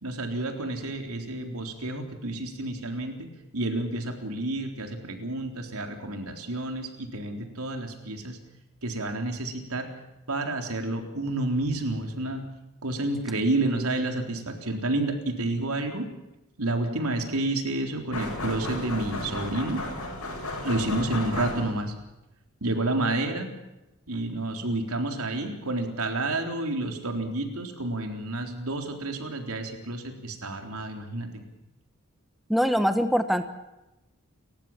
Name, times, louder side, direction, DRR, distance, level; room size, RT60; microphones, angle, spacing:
voice 1, 0.0-8.4 8.8-9.9 10.3-12.5 12.8-16.1 16.6-19.8 20.6-21.9 22.6-23.6 24.1-31.4, right 2 dB, 80° right, 4 dB, 3.9 m, -30 dB
sound 1, 18.1-22.0, left 2 dB, 90° left, 7.8 m, -34 dB
voice 2, 32.5-33.4, equal, ahead, 8 dB, 1.1 m, -23 dB
30.0 x 15.5 x 7.4 m, 0.96 s
head